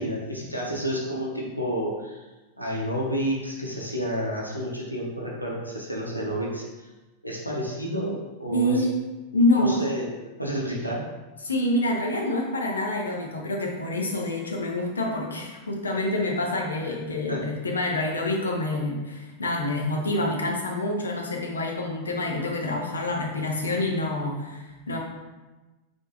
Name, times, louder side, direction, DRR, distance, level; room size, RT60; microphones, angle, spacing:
voice 1, 0.0-2.3 2.6-6.9 7.2-8.9 9.5-10.1 10.4-11.0 16.7-16.9 17.3-17.5, equal, 90° right, -3 dB, 0.6 m, -30 dB
voice 2, 8.5-8.9 9.3-9.8 11.4-25.0, left 1 dB, 75° left, 0 dB, 0.5 m, -27 dB
3.7 x 2.5 x 2.8 m, 1.2 s
figure-of-eight pair, 90°, 0 cm